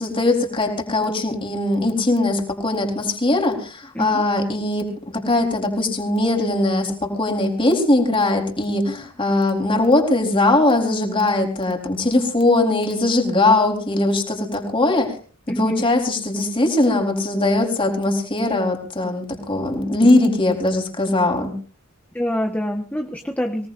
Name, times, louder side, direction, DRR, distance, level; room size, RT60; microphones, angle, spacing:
voice 1, 0.0-4.9 5.2-15.1 15.6-21.5, left 2 dB, 25° left, 2 dB, 4.1 m, -20 dB
voice 2, 15.5-15.9 22.1-23.7, equal, 5° left, 2 dB, 1.3 m, -25 dB
25.5 x 18.5 x 2.6 m, 0.40 s
head